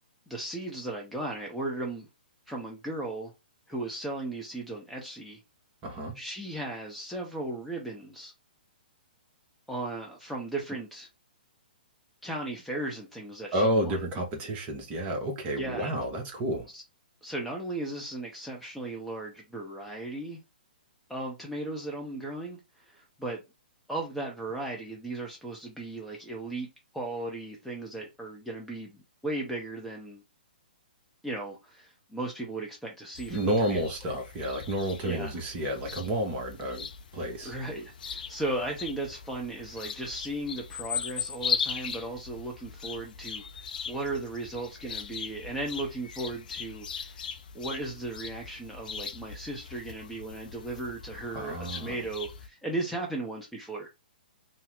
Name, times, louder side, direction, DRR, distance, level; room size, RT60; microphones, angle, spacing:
voice 1, 0.3-2.1 2.5-3.3 3.7-5.4 6.1-8.3 9.7-11.1 12.2-14.0 15.6-15.9 16.7-16.8 17.2-20.4 21.1-23.4 23.9-26.7 26.9-30.2 31.2-34.1 35.0-35.3 37.4-47.3 47.5-53.9, right 2 dB, ahead, 0.6 m, -36 dB
voice 2, 5.8-6.2 13.5-16.7 33.3-36.9 37.1-37.5 51.3-52.0, right 1 dB, 25° right, 0.9 m, -30 dB
sound 1, 33.1-52.5, left 6 dB, 55° left, 0.4 m, -39 dB
2.7 x 2.0 x 3.5 m
figure-of-eight pair, 120°, 5 cm